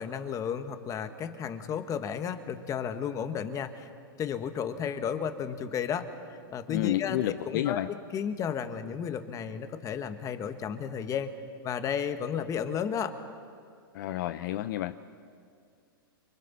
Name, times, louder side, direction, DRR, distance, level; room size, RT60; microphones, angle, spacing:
voice 1, 0.0-3.9 4.2-6.1 6.5-11.3 11.6-13.1, left 7 dB, 25° left, 9 dB, 1.5 m, -33 dB
voice 2, 6.7-7.9 13.9-14.9, left 13 dB, 60° left, 11 dB, 0.7 m, -30 dB
29.5 x 24.5 x 4.2 m, 2.3 s
hypercardioid pair, 120°, 12 cm